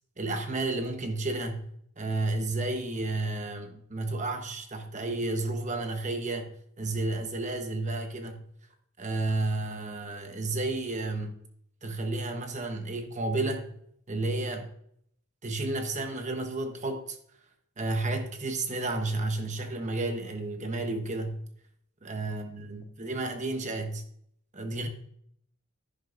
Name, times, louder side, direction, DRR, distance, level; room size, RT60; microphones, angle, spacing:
voice 1, 0.2-1.7 2.0-6.5 6.8-8.4 9.0-11.4 11.8-13.7 14.1-14.7 15.4-17.2 17.8-21.4 22.0-24.0 24.5-24.9, right 2 dB, 35° right, 1.1 m, -31 dB
10.5 x 10.0 x 2.6 m
head